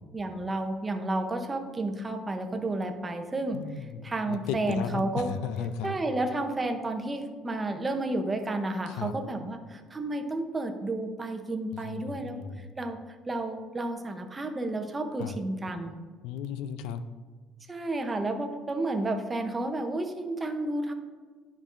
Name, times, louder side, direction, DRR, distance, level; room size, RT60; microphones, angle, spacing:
voice 1, 0.1-3.6 4.0-5.3 5.8-13.0 13.3-15.9 17.7-20.9, right 2 dB, 15° right, 5 dB, 0.7 m, -31 dB
voice 2, 3.5-6.0 8.9-9.2 11.7-12.7 15.2-15.4 16.2-17.0, left 7 dB, 90° left, 12 dB, 0.4 m, -35 dB
10.5 x 5.2 x 2.5 m, 1.5 s
cardioid pair, 135°, 0 cm